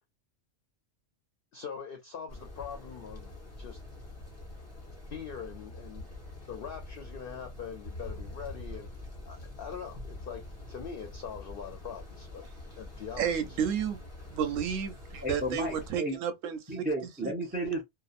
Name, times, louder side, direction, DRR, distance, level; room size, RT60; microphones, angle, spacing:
voice 1, 1.5-3.8 5.1-6.1 6.5-8.9 9.3-12.5 12.8-13.6, left 7 dB, 60° left, 0.6 m, -42 dB
sound 1, 2.3-15.9, left 1 dB, 15° left, 0.8 m, -45 dB
voice 2, 13.2-14.0 14.3-16.9 17.2-17.3, right 7 dB, 85° right, 1.0 m, -32 dB
voice 3, 15.2-16.2 16.7-17.8, right 1 dB, 15° right, 0.4 m, -33 dB
2.8 x 2.0 x 2.4 m
omnidirectional pair, 1.3 m